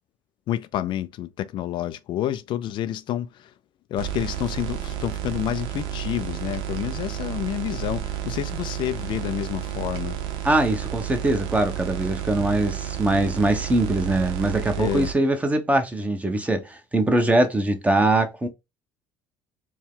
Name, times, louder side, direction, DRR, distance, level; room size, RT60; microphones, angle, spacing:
voice 1, 0.5-3.5 3.9-10.2 14.8-15.1, left 12 dB, 55° left, 0.4 m, -29 dB
sound 1, 4.0-15.1, right 11 dB, 70° right, 0.8 m, -31 dB
voice 2, 10.4-18.5, right 2 dB, 15° right, 0.9 m, -22 dB
4.4 x 2.2 x 3.7 m
supercardioid pair, 90°, 9 cm